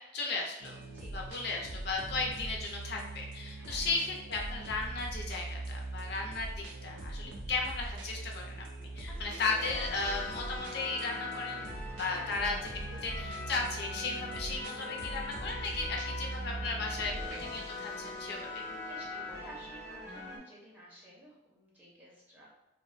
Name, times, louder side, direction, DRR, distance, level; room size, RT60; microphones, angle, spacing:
voice 1, 0.1-0.8 1.1-12.6 13.0-17.1 17.4-18.6, left 3 dB, 60° left, 0 dB, 0.5 m, -35 dB
sound 1, 0.6-17.6, right 2 dB, 90° right, 0.4 m, -42 dB
voice 2, 3.5-3.9 7.1-7.5 9.1-9.4 12.0-12.4 17.9-18.2 18.8-22.5, equal, 10° right, -4 dB, 0.5 m, -52 dB
sound 2, 6.8-8.0 8.8-20.4, left 3 dB, 80° left, 0.9 m, -42 dB
2.4 x 2.1 x 2.5 m, 0.94 s
head